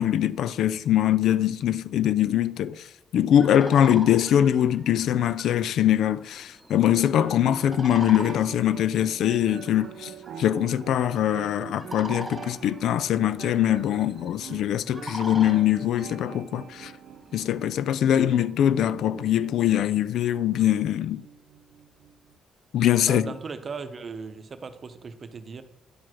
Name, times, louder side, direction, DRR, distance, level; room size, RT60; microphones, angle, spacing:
voice 1, 0.0-2.9 3.1-10.1 10.4-16.9 17.3-21.2 22.7-23.3, left 11 dB, 75° left, 0.3 m, -23 dB
sound 1, 3.3-17.9, right 1 dB, 5° right, 2.3 m, -43 dB
sound 2, 6.9-22.4, right 7 dB, 75° right, 0.6 m, -44 dB
voice 2, 23.0-25.6, right 5 dB, 40° right, 0.8 m, -37 dB
10.0 x 4.7 x 6.1 m
cardioid pair, 90°, 0 cm